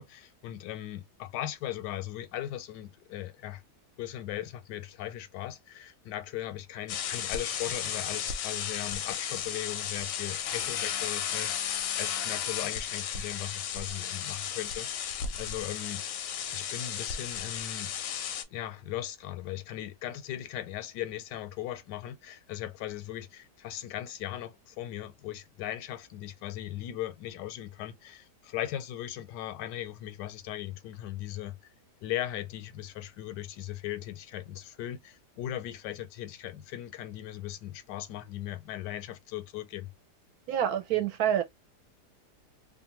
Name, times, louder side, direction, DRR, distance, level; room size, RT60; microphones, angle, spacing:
voice 1, 0.0-3.6 4.0-16.0 16.5-17.9 18.5-31.7 32.0-39.9, left 13 dB, 85° left, 1.2 m, -38 dB
sound 1, 6.9-18.4, left 8 dB, 70° left, 0.8 m, -34 dB
voice 2, 40.5-41.4, right 10 dB, 70° right, 1.1 m, -27 dB
2.7 x 2.5 x 2.8 m
omnidirectional pair, 1.8 m